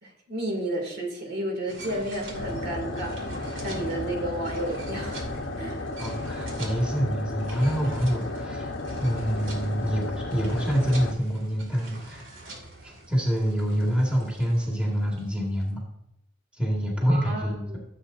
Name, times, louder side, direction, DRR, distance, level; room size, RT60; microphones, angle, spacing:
voice 1, 0.0-5.3 5.6-5.9 17.1-17.8, right 1 dB, 55° right, 1 dB, 2.7 m, -32 dB
sound 1, 1.7-15.6, right 2 dB, 70° right, 2.7 m, -44 dB
sound 2, 2.3-11.1, left 2 dB, 65° left, 1.0 m, -34 dB
voice 2, 6.0-8.7 9.0-12.3 12.8-15.8 16.5-17.7, equal, 5° right, -3 dB, 2.0 m, -26 dB
15.0 x 7.8 x 2.7 m, 0.87 s
head